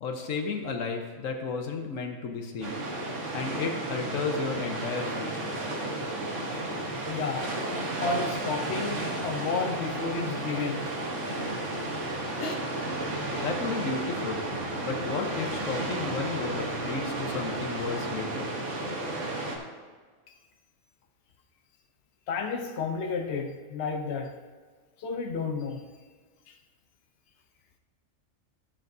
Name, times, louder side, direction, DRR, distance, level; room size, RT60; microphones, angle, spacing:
voice 1, 0.0-2.8 3.3-5.5 13.4-14.5 14.8-18.5, left 4 dB, 75° left, 1.3 m, -33 dB
sound 1, 2.6-19.6, right 2 dB, 65° right, 1.5 m, -33 dB
voice 2, 7.1-7.5 8.0-10.9 12.4-12.5 22.3-24.4 25.0-25.9 26.5-26.6, left 4 dB, 60° left, 0.9 m, -32 dB
13.0 x 7.3 x 2.6 m
omnidirectional pair, 1.4 m